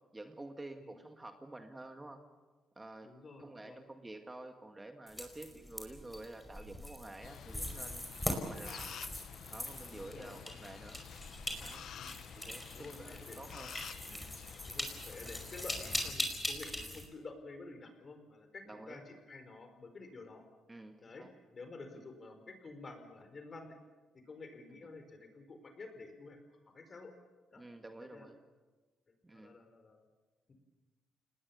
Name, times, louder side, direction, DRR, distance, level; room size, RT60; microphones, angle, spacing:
voice 1, 0.1-2.2 2.8-3.1 3.4-8.9 9.5-11.0 11.6-11.9 12.4-12.6 13.0-13.8 14.1-14.3 18.7-19.0 20.7-21.3 24.7-24.9 27.6-28.4 29.2-29.6, right 2 dB, 15° right, 5 dB, 2.0 m, -49 dB
voice 2, 3.0-3.8 9.9-10.4 11.9-12.1 12.7-13.4 14.7-20.4 21.0-21.2 21.5-23.8 24.3-26.4 26.7-27.1 27.5-27.6 28.1-28.3 29.3-30.0 30.5-30.6, left 3 dB, 40° left, 7 dB, 4.7 m, -50 dB
sound 1, 5.1-17.1, left 1 dB, 10° left, 5.1 m, -41 dB
sound 2, 7.2-16.1, left 9 dB, 70° left, 1.1 m, -50 dB
29.0 x 19.5 x 7.1 m, 1.3 s
cardioid pair, 90°, 0 cm